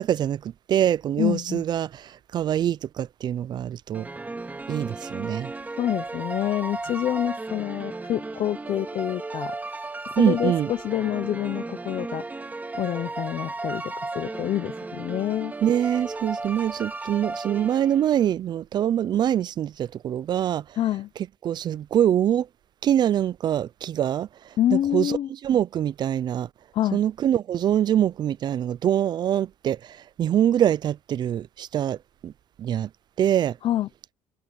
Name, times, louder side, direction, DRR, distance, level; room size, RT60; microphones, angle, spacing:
voice 1, 0.0-4.1 4.7-5.5 10.2-10.7 15.6-20.6 21.4-22.5 22.8-25.2 25.4-26.5 26.9-32.3 32.6-32.9 33.2-33.6, right 10 dB, 40° right, 0.3 m, -24 dB
voice 2, 1.2-1.6 5.8-9.6 10.1-12.2 12.7-15.5 20.8-21.1 24.6-25.3 26.7-27.0 33.6-33.9, left 12 dB, 50° left, 0.6 m, -27 dB
Dark Evil Piano, 3.9-18.2, right 3 dB, 15° right, 2.1 m, -35 dB
cardioid pair, 140°, 11 cm